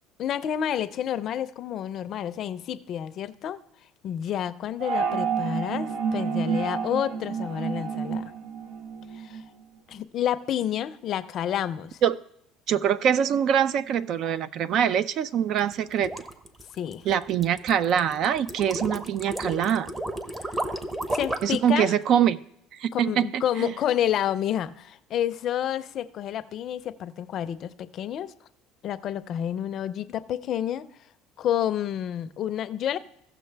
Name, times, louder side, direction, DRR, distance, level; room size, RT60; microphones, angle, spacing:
voice 1, 0.2-3.6 4.0-8.3 9.1-9.4 9.9-12.0 16.8-17.1 20.4-20.6 21.1-21.9 22.9-28.3 28.8-30.8 31.4-33.0, left 10 dB, 50° left, 14 dB, 0.5 m, -29 dB
sound 1, 4.8-9.4, right 6 dB, 80° right, 1.1 m, -29 dB
voice 2, 12.7-16.1 17.0-19.9 21.4-22.4 22.7-23.7, right 9 dB, 55° right, 16 dB, 0.4 m, -24 dB
sound 2, 15.6-21.6, right 1 dB, 15° right, 0.8 m, -33 dB
16.0 x 6.2 x 3.4 m, 0.74 s
supercardioid pair, 110°, 0 cm